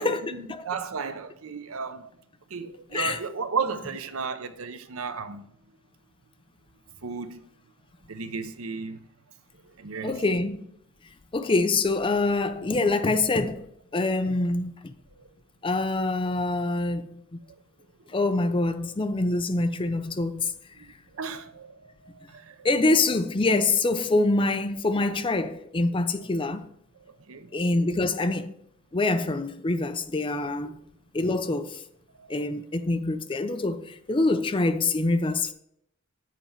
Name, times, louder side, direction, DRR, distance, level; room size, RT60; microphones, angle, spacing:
voice 1, 0.0-2.1 2.5-5.5 7.0-7.4 8.1-9.0 9.8-10.2 15.2-15.3 20.8-22.7 27.3-27.5 32.2-32.3 33.6-33.7, right 5 dB, 80° right, 0.7 m, -34 dB
voice 2, 10.0-10.7 11.3-13.7 13.9-14.9 15.6-17.4 18.1-20.5 22.6-26.7 27.5-28.5 28.9-30.8 31.1-31.8 32.3-35.5, left 2 dB, 25° left, 0.5 m, -25 dB
7.5 x 4.4 x 6.9 m
head